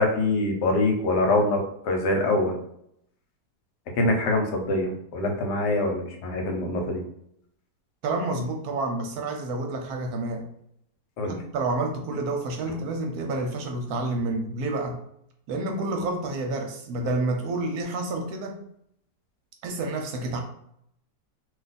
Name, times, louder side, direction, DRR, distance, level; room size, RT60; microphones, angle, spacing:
voice 1, 0.0-2.6 3.9-7.0 11.2-11.4 12.7-12.8, left 2 dB, 75° left, 2 dB, 1.3 m, -24 dB
voice 2, 8.0-10.5 11.3-15.0 15.5-18.6 19.6-20.4, right 2 dB, 70° right, 3 dB, 1.0 m, -29 dB
2.7 x 2.3 x 4.0 m, 0.72 s
omnidirectional pair, 1.8 m